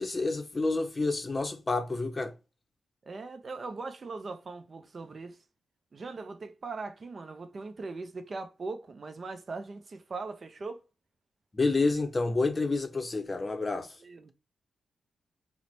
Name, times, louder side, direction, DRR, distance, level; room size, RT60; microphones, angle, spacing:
voice 1, 0.0-2.3 11.5-13.9, left 3 dB, 30° left, 0.6 m, -29 dB
voice 2, 3.0-5.4 5.9-10.8 14.0-14.3, right 3 dB, 45° right, 0.5 m, -40 dB
3.0 x 2.1 x 3.9 m
cardioid pair, 70°, 0 cm